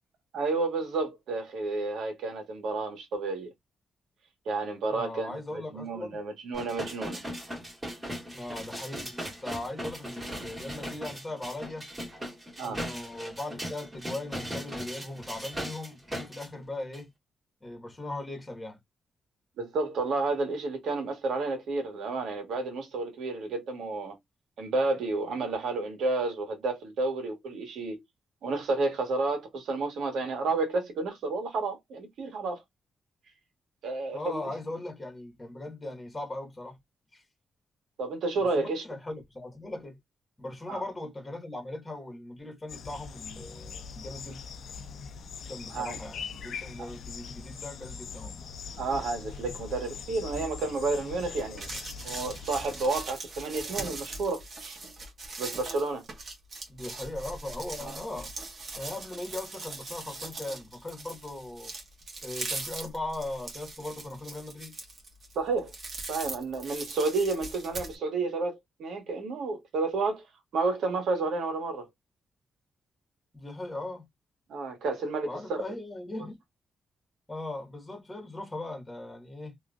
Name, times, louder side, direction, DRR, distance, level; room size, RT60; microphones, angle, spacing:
voice 1, 0.3-3.5 4.4-7.2 12.6-12.8 19.6-24.2 24.6-28.0 28.4-32.6 33.8-34.4 38.0-38.8 40.7-40.8 45.7-46.0 46.8-46.9 48.8-51.7 52.0-54.8 55.4-56.0 57.9-58.0 65.3-65.7 66.1-70.2 70.5-71.8 74.5-75.6, right 3 dB, 85° right, 1.4 m, -31 dB
voice 2, 4.9-6.2 8.3-11.9 12.6-17.1 17.6-18.8 34.1-36.8 37.1-37.2 38.4-40.0 40.4-44.4 45.5-48.3 56.7-58.3 58.7-61.7 62.2-64.7 73.3-74.1 75.2-76.4 77.3-79.6, left 2 dB, 15° left, 1.7 m, -39 dB
sound 1, 6.5-16.5 16.9-17.0, equal, 20° right, 2.1 m, -38 dB
sound 2, 42.7-52.9, left 6 dB, 70° left, 0.5 m, -42 dB
sound 3, 51.4-68.0, right 3 dB, 45° right, 1.5 m, -40 dB
3.5 x 3.0 x 2.4 m
cardioid pair, 100°, 0 cm